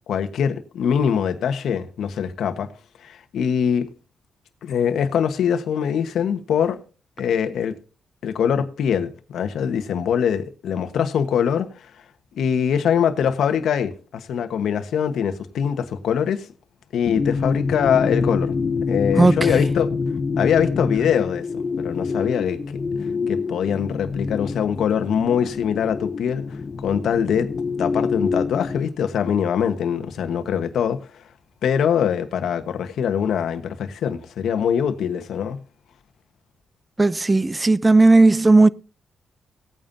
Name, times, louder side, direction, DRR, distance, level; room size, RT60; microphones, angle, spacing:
voice 1, 0.1-2.7 3.0-3.9 4.6-6.8 7.2-7.8 8.2-11.7 12.4-16.5 16.9-18.6 18.9-19.9 20.4-21.4 21.8-22.6 23.3-26.4 26.8-27.5 27.8-31.0 31.6-35.6, left 8 dB, 80° left, 1.2 m, -23 dB
sound 1, 17.1-28.8, left 4 dB, 45° left, 0.6 m, -26 dB
voice 2, 19.2-19.5 37.0-38.7, right 3 dB, 20° right, 0.5 m, -15 dB
17.5 x 9.0 x 2.7 m
cardioid pair, 90°, 0 cm